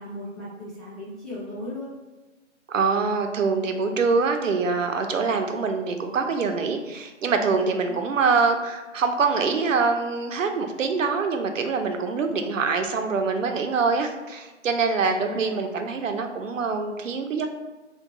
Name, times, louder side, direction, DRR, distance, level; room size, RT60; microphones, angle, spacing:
voice 1, 0.0-1.9 7.8-8.0 15.0-15.8, left 1 dB, ahead, -12 dB, 0.4 m, -37 dB
voice 2, 2.7-17.5, right 4 dB, 90° right, 5 dB, 0.6 m, -24 dB
2.6 x 2.2 x 3.9 m, 1.2 s
hypercardioid pair, 175°, 37 cm